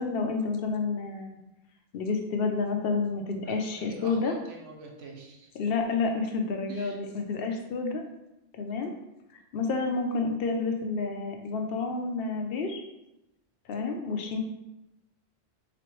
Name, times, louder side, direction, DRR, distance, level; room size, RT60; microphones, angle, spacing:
voice 1, 0.0-1.4 1.9-4.3 5.6-8.0 8.6-8.9 9.5-12.8 13.7-14.4, left 4 dB, 65° left, 3 dB, 0.6 m, -29 dB
voice 2, 3.4-5.5 6.7-7.0, right 4 dB, 70° right, 0 dB, 1.1 m, -46 dB
4.1 x 3.0 x 3.0 m, 0.91 s
omnidirectional pair, 1.3 m